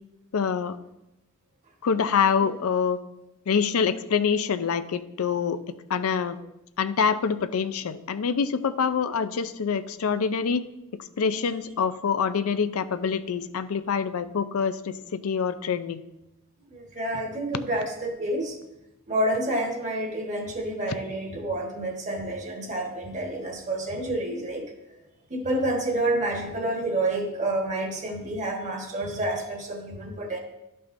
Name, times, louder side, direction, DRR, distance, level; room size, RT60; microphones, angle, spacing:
voice 1, 0.3-0.8 1.8-3.0 3.5-5.6 5.9-6.4 6.8-10.6 11.0-16.0, left 6 dB, 85° left, 12 dB, 0.5 m, -25 dB
voice 2, 16.7-18.6 19.1-24.6 25.3-30.4, right 1 dB, 35° right, 1 dB, 1.3 m, -29 dB
12.0 x 5.5 x 2.6 m, 0.92 s
head